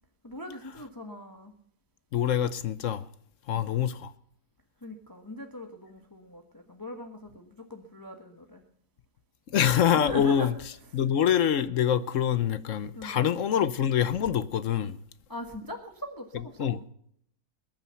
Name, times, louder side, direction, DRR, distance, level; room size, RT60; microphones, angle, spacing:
voice 1, 0.2-1.5 3.5-3.7 4.8-8.6 9.9-10.5 10.9-11.0 12.9-13.3 15.3-16.7, left 1 dB, 10° left, 1.3 m, -40 dB
voice 2, 2.1-3.1 3.5-4.1 9.5-10.5 10.9-15.0 16.6-16.8, left 9 dB, 55° left, 0.9 m, -25 dB
21.0 x 9.2 x 5.7 m
omnidirectional pair, 1.9 m